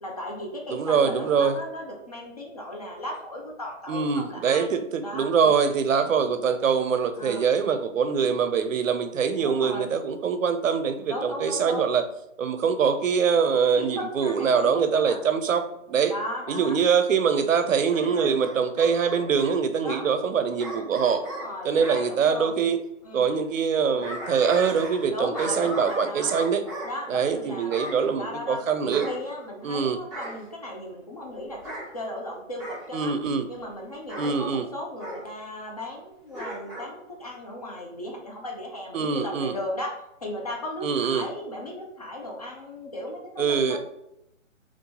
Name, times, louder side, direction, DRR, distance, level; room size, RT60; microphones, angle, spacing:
voice 1, 0.0-4.6 5.0-5.6 7.2-7.5 9.4-9.9 11.1-11.9 13.8-15.2 16.1-16.8 17.9-18.3 19.8-20.1 21.2-22.6 23.0-23.3 25.1-26.3 26.8-33.1 33.5-39.9 40.2-43.8, left 1 dB, 30° left, -1 dB, 0.4 m, -36 dB
voice 2, 0.7-1.6 3.9-12.0 12.4-16.1 16.5-21.2 21.6-22.8 23.1-26.6 27.1-29.1 29.6-30.0 32.9-33.5 34.2-34.6 38.9-39.6 40.8-41.3 43.4-43.8, right 6 dB, 75° right, 8 dB, 0.5 m, -24 dB
Bark / Growling, 17.9-19.5 20.6-22.1 23.7-25.1 25.3-26.9 27.7-28.0 28.9-29.7 30.1-30.4 31.5-31.9 32.6-32.9 34.1-34.3 35.0-35.2 36.3-36.9 37.3-37.4, right 1 dB, ahead, 0.7 m, -36 dB
3.6 x 2.4 x 2.8 m, 0.80 s
hypercardioid pair, 150°, 39 cm